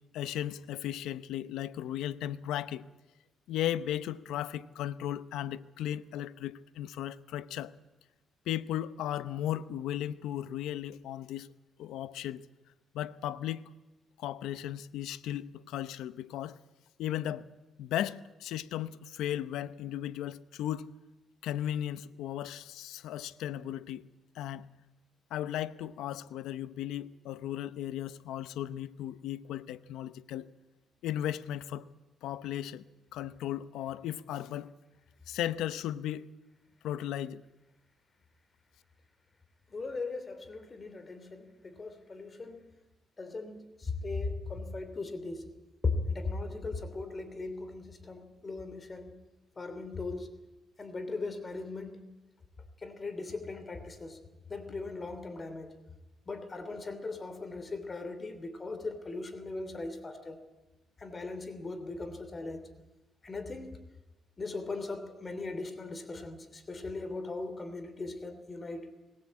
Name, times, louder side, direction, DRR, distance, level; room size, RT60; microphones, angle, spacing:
voice 1, 0.1-2.9 3.5-7.7 8.5-11.5 11.8-12.4 12.9-13.7 14.2-16.6 17.0-17.5 17.8-20.9 21.4-24.0 24.3-24.7 25.3-30.5 31.0-31.8 32.2-32.8 33.1-34.7 35.3-36.3 36.8-37.4, left 12 dB, 85° left, 0.8 m, -36 dB
voice 2, 39.7-42.6 43.2-45.4 45.8-49.2 49.6-50.3 50.8-52.0 52.8-54.2 54.5-55.7 56.3-60.4 61.0-62.6 63.2-63.8 64.4-68.9, left 3 dB, 30° left, 3.1 m, -38 dB
20.5 x 18.0 x 8.6 m
cardioid pair, 90°, 0 cm